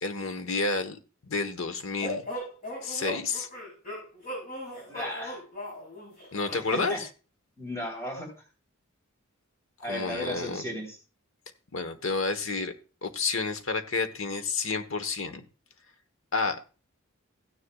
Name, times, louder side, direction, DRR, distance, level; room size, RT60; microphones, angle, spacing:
voice 1, 0.0-2.2 2.8-3.5 6.3-7.0 9.9-10.6 11.7-12.7 13.0-15.4 16.3-16.7, left 4 dB, 75° left, 8 dB, 1.1 m, -30 dB
sound 1, 2.0-6.8, equal, 40° left, 6.2 m, -37 dB
voice 2, 4.7-5.4 6.5-7.0 7.6-8.3 9.8-11.0, equal, 15° left, -1 dB, 3.3 m, -35 dB
16.0 x 9.8 x 2.3 m, 0.35 s
head